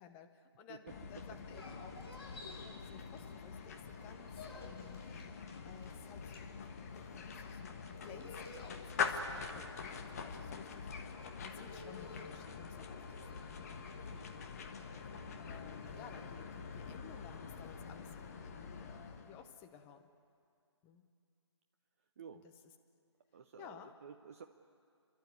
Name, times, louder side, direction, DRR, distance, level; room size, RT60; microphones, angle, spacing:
voice 1, 0.0-2.3 2.6-5.0 5.6-10.9 11.4-13.2 15.4-20.0 20.8-21.0 22.4-22.5 23.6-23.9, left 8 dB, 10° left, 6 dB, 0.8 m, -56 dB
sound 1, 0.9-19.5, left 5 dB, 30° left, 1.4 m, -45 dB
sound 2, 1.5-3.7 4.0-16.3, left 2 dB, 60° left, 5.9 m, -55 dB
sound 3, 3.4-3.5 3.9-4.1 4.6-5.2 5.7-5.8 6.1-6.3 6.8-7.8 8.2-8.6 9.1-9.7 10.5-10.9, left 4 dB, 5° right, 4.8 m, -61 dB
voice 2, 13.9-14.3 22.2-22.4 23.3-24.4, right 7 dB, 30° right, 5 dB, 0.7 m, -53 dB
29.5 x 12.0 x 9.4 m, 2.4 s
figure-of-eight pair, 150°, 15 cm